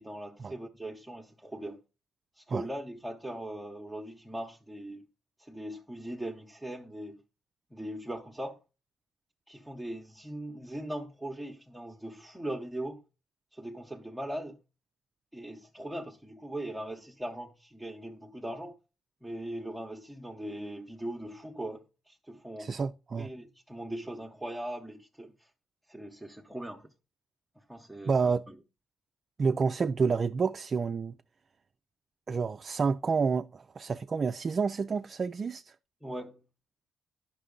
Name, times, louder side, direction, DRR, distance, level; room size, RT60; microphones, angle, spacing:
voice 1, 0.0-1.8 2.4-5.1 5.4-7.2 7.7-8.6 9.5-13.0 13.5-14.6 15.3-18.8 19.2-22.7 23.2-25.5 25.9-26.9 27.6-28.6 36.0-36.4, right 1 dB, 5° right, 0.8 m, -40 dB
voice 2, 22.6-23.3 28.1-28.4 29.4-31.1 32.3-35.7, right 5 dB, 40° right, 0.3 m, -29 dB
9.6 x 5.9 x 3.8 m
cardioid pair, 90°, 0 cm